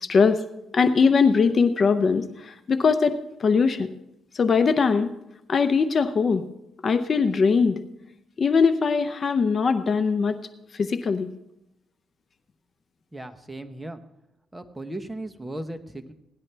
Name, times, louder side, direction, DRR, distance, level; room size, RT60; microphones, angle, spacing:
voice 1, 0.0-0.4 0.7-3.9 4.3-5.1 5.5-6.4 6.8-7.8 8.4-10.4 10.7-11.3, left 5 dB, 45° left, 11 dB, 0.7 m, -21 dB
voice 2, 13.1-14.0 14.5-16.1, right 1 dB, 10° right, 7 dB, 1.0 m, -36 dB
17.5 x 10.5 x 3.4 m, 0.89 s
cardioid pair, 90°, 0 cm